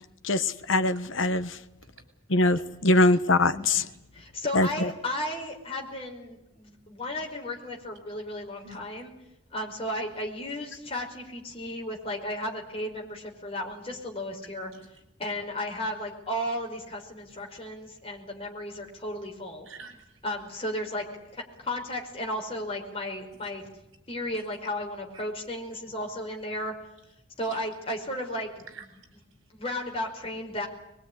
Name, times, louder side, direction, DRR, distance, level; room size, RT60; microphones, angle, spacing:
voice 1, 0.2-1.6 2.3-3.8 4.5-4.9, left 2 dB, 70° left, 1.3 m, -23 dB
voice 2, 3.4-3.9 8.6-8.8 10.8-11.0 14.7-15.0 17.3-17.4 19.6-20.2 27.5-27.6 28.7-29.2, equal, 75° right, 6.5 m, -47 dB
voice 3, 4.3-9.1 9.5-14.7 15.2-19.7 20.2-21.0 21.3-23.7 24.1-26.7 27.4-28.5 29.5-30.7, left 1 dB, 30° left, 5.2 m, -34 dB
22.5 x 22.0 x 10.0 m
head